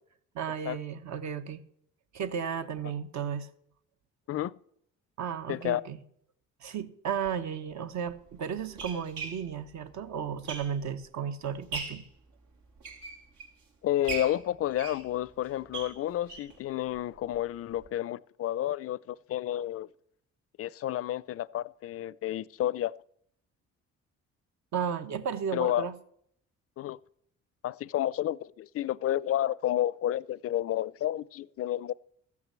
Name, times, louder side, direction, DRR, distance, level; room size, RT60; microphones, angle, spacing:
voice 1, 0.3-1.6 2.1-3.5 5.2-6.0 6.6-12.0 24.7-25.9, right 7 dB, 70° right, 1.1 m, -34 dB
voice 2, 5.5-5.8 13.8-19.9 20.6-22.9 25.5-25.9 26.8-27.0 27.6-31.9, left 12 dB, 50° left, 0.4 m, -30 dB
sound 1, 7.2-7.3 8.1-11.0 11.4-12.1 12.6-13.6 14.0-16.6 16.9-17.0 17.3-17.4 17.8-17.9, right 4 dB, 90° right, 2.9 m, -40 dB
14.5 x 6.0 x 7.5 m
cardioid pair, 90°, 30 cm